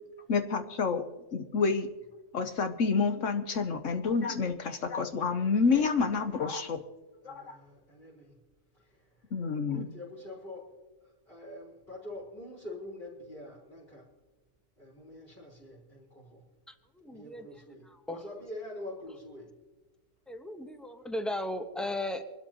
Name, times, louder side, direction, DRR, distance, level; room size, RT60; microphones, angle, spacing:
voice 1, 0.3-1.0 1.3-1.9 2.3-6.8 7.2-7.6 9.3-9.9, left 5 dB, 65° left, 7 dB, 1.3 m, -28 dB
voice 2, 7.2-8.4 8.7-14.1 14.8-16.4 17.1-19.6, left 1 dB, 40° left, -10 dB, 4.4 m, -46 dB
voice 3, 16.7-17.5 18.1-18.2 20.3-22.2, left 1 dB, ahead, 7 dB, 0.9 m, -36 dB
26.0 x 12.5 x 3.0 m, 1.2 s
omnidirectional pair, 1.4 m